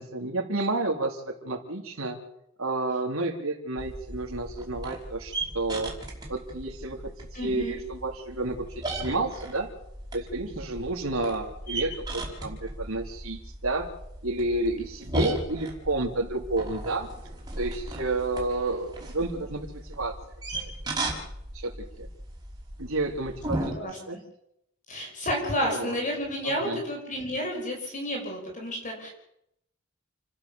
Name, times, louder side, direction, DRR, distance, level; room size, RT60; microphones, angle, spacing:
voice 1, 0.0-2.2 2.6-5.9 6.3-7.0 7.3-9.7 10.1-13.9 14.2-17.1 17.6-20.1 20.5-20.7 21.5-21.7 22.0-22.1 22.8-23.7 24.1-24.2 25.6-26.0 26.4-26.8, right 2 dB, 80° right, 1 dB, 3.5 m, -30 dB
sound 1, 3.8-23.7, right 1 dB, 20° right, 5.2 m, -36 dB
voice 2, 7.3-7.8 23.6-24.0 24.9-29.1, equal, 40° left, 1 dB, 5.6 m, -31 dB
29.5 x 12.5 x 7.2 m, 0.78 s
head